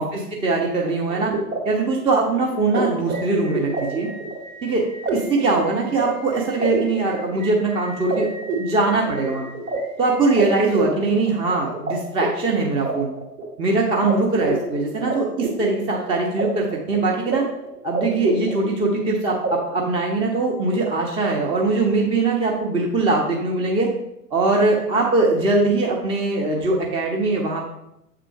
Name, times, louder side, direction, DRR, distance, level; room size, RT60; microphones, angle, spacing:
voice 1, 0.0-1.3 1.6-4.1 4.6-4.9 5.1-8.3 8.6-9.5 10.0-13.1 13.6-17.4 17.8-23.9 24.3-27.6, right 3 dB, 10° right, -1 dB, 0.6 m, -21 dB
sound 1, 0.8-11.9 12.2-13.7 14.1-14.2 14.4-16.5 16.7-17.4 17.6-19.1 19.4-19.5, right 3 dB, 55° right, 2.2 m, -28 dB
7.3 x 3.7 x 5.6 m, 0.83 s
figure-of-eight pair, 105°, 48 cm